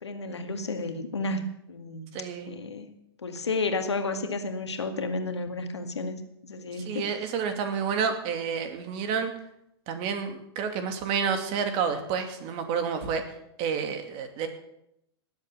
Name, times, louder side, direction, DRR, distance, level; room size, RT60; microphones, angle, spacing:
voice 1, 0.0-2.1 2.5-2.9 3.2-6.2 6.4-7.0, left 3 dB, 85° left, 6 dB, 2.1 m, -32 dB
voice 2, 2.1-2.5 6.9-9.3 9.9-13.2 13.6-14.5, right 6 dB, 40° right, 6 dB, 2.6 m, -29 dB
19.0 x 8.0 x 6.9 m, 0.80 s
hypercardioid pair, 110°, 14 cm